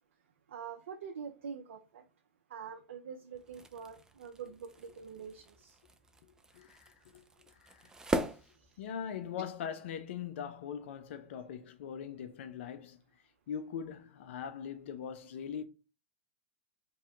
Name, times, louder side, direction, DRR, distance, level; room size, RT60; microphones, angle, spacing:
voice 1, 0.5-1.8 2.5-5.7, right 6 dB, 70° right, 0.4 m, -45 dB
sound 1, 3.3-9.3, right 2 dB, 10° right, 0.3 m, -41 dB
voice 2, 6.5-7.9 8.8-13.0 13.5-15.6, left 8 dB, 65° left, 0.5 m, -41 dB
2.8 x 2.2 x 3.6 m
hypercardioid pair, 100°, 7 cm